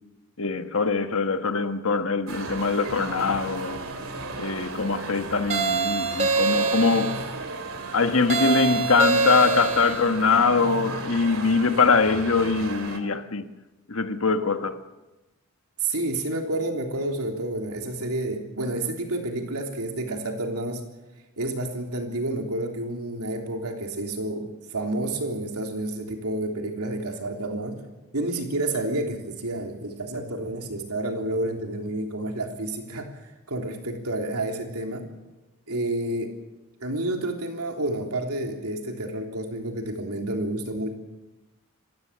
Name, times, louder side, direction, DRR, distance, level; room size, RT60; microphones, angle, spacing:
voice 1, 0.4-3.8 4.4-7.2 7.9-13.5 13.9-14.8, left 4 dB, 60° left, 1.4 m, -23 dB
sound 1, 2.3-13.0, right 3 dB, 65° right, 2.7 m, -35 dB
sound 2, 5.5-7.3 8.3-10.1, right 4 dB, 30° right, 1.9 m, -24 dB
voice 2, 15.8-20.8 21.4-27.8 28.1-33.1 33.5-35.1 35.7-36.4 36.8-40.9, right 1 dB, 80° right, 3.5 m, -29 dB
26.5 x 15.5 x 7.5 m
head